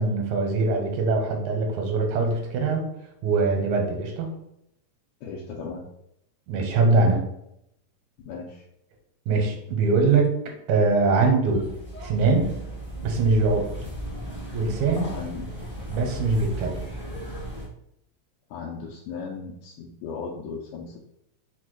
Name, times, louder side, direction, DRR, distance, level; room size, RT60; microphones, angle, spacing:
voice 1, 0.0-2.8 3.2-4.3 6.5-7.2 9.3-10.3 10.7-11.7 12.0-12.5 13.0-13.7 14.5-15.1 15.9-16.8, right 3 dB, 85° right, 2 dB, 2.2 m, -22 dB
voice 2, 5.2-5.8 8.3-8.6 15.0-15.7 18.5-21.0, left 5 dB, 85° left, -3 dB, 2.0 m, -36 dB
sound 1, 11.4-17.7, right 1 dB, 15° left, 0.4 m, -36 dB
5.0 x 2.2 x 4.5 m, 0.79 s
omnidirectional pair, 3.3 m